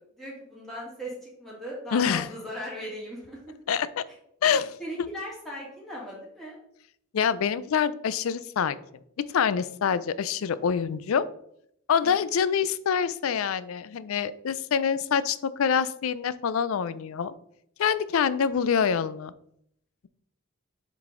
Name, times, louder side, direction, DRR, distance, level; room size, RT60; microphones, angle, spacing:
voice 1, 0.0-3.5 4.8-6.6 12.0-12.2, equal, ahead, -6 dB, 2.2 m, -38 dB
voice 2, 1.9-2.3 3.7-4.0 4.4-4.8 7.1-8.8 9.3-11.2 11.9-17.3 17.8-19.3, left 7 dB, 80° left, 16 dB, 0.4 m, -26 dB
7.2 x 3.9 x 3.7 m, 0.71 s
head